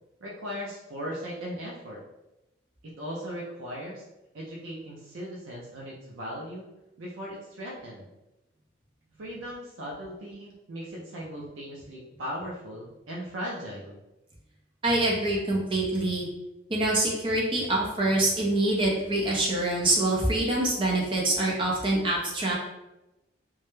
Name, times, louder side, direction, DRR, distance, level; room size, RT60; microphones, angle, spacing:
voice 1, 0.2-2.0 2.8-4.0 4.3-6.7 7.0-8.1 9.2-14.0, equal, 80° right, -3 dB, 0.5 m, -38 dB
voice 2, 14.8-16.3 16.7-22.5, right 1 dB, 25° right, -3 dB, 0.5 m, -25 dB
2.2 x 2.0 x 3.0 m, 0.95 s
head